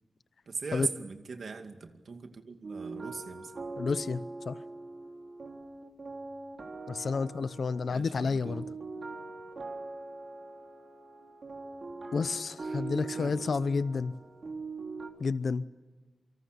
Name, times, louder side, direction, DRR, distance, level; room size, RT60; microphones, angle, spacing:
voice 1, 0.5-3.5 7.9-8.7 12.6-12.8 13.1-13.5, right 4 dB, 75° right, 6 dB, 2.3 m, -40 dB
sound 1, 2.6-15.1, right 3 dB, 55° right, 3.6 m, -42 dB
voice 2, 3.8-4.6 6.9-8.7 12.1-14.1 15.2-15.6, left 4 dB, 75° left, 15 dB, 0.7 m, -30 dB
28.0 x 25.5 x 6.8 m, 1.2 s
wide cardioid pair, 120°, 0 cm